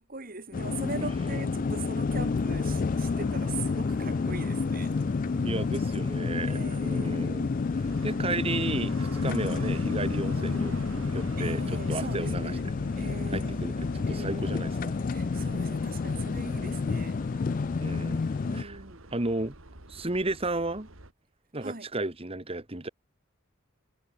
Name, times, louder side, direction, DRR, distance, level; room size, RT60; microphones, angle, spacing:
voice 1, 0.0-4.9 6.5-7.3 11.4-12.6 12.9-13.6 14.1-14.7 15.1-17.2 18.5-19.0 21.6-21.9, right 3 dB, 45° right, 2.8 m, -41 dB
sound 1, 0.5-18.6, left 4 dB, 40° left, 0.4 m, -29 dB
sound 2, 2.1-21.1, right 1 dB, 80° right, 3.1 m, -44 dB
voice 2, 5.4-10.7 11.1-12.5 13.3-14.9 17.8-18.2 18.5-18.8 19.1-19.6 19.9-20.9 21.5-22.9, right 2 dB, 30° right, 1.8 m, -33 dB
head